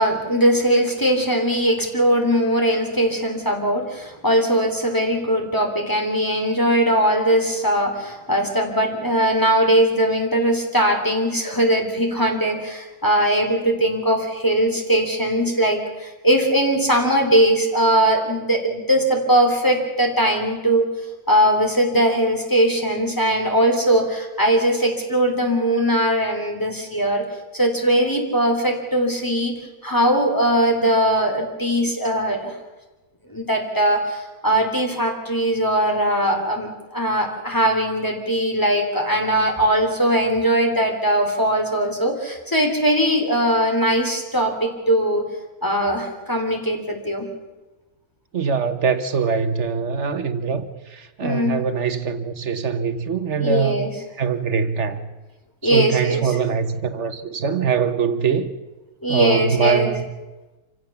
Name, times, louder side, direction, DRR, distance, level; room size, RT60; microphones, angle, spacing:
voice 1, 0.0-20.9 21.3-27.2 27.5-29.6 29.8-32.5 33.3-45.3 45.6-47.3 51.2-51.6 53.4-53.9 55.6-56.4 59.0-59.9, right 1 dB, 15° left, 3.2 m, -20 dB
voice 2, 48.3-53.9 54.2-55.0 55.6-58.5 59.1-60.1, right 6 dB, 55° right, 1.4 m, -23 dB
26.5 x 16.0 x 7.1 m
omnidirectional pair, 1.6 m